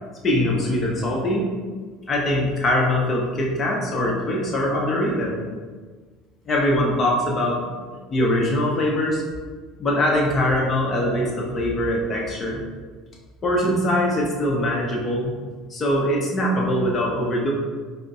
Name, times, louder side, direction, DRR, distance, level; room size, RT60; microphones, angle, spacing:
voice 1, 0.2-1.5 2.1-5.5 6.5-7.6 8.1-9.2 9.8-12.6 13.4-15.3 15.7-17.5, left 1 dB, 35° left, -2 dB, 0.8 m, -22 dB
4.2 x 2.0 x 2.6 m, 1.5 s
figure-of-eight pair, 65°, 0 cm